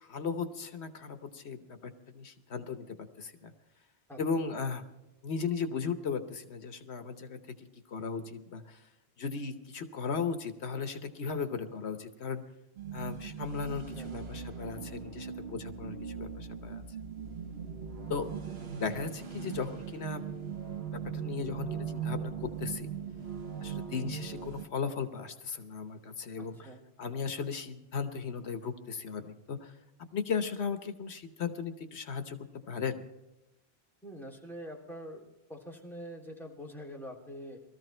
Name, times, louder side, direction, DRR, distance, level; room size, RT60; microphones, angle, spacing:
voice 1, 0.0-3.5 4.2-4.8 5.2-8.8 9.2-12.4 12.9-16.8 18.1-18.2 18.8-20.2 20.9-22.9 23.6-26.7 27.0-29.7 30.1-32.4 32.7-33.0, left 5 dB, 85° left, 8 dB, 1.3 m, -36 dB
sound 1, 12.8-24.7, right 7 dB, 70° right, 1.2 m, -39 dB
voice 2, 26.4-26.8 34.0-35.2 35.5-37.6, equal, ahead, -2 dB, 3.1 m, -44 dB
20.5 x 14.0 x 4.4 m, 0.96 s
omnidirectional pair, 1.1 m